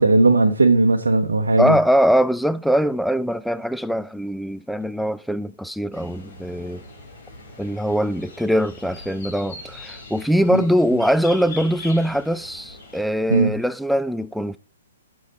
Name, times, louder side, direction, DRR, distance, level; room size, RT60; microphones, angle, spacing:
voice 1, 0.0-1.8 10.5-10.6 13.3-13.5, right 2 dB, 85° right, 0.7 m, -17 dB
voice 2, 1.6-6.8 7.6-14.6, equal, ahead, 0.3 m, -22 dB
sound 1, 5.9-13.0, left 2 dB, 50° left, 3.6 m, -41 dB
7.8 x 5.1 x 4.0 m
hypercardioid pair, 125°, 0 cm